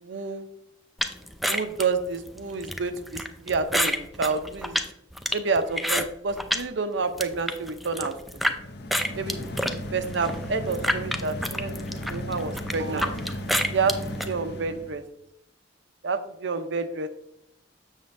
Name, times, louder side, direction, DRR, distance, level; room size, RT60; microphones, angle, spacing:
voice 1, 0.0-0.4 1.5-4.8 5.3-8.1 9.1-9.4 9.9-11.8 12.1-13.2 13.7-14.0 14.3-15.0 16.0-17.1, right 4 dB, 70° right, 10 dB, 0.6 m, -29 dB
sound 1, 1.0-6.7 7.0-8.6 8.9-14.3, equal, ahead, 0.4 m, -29 dB
sound 2, 8.4-15.0, left 1 dB, 60° left, 0.7 m, -35 dB
7.3 x 6.7 x 2.6 m, 0.79 s
head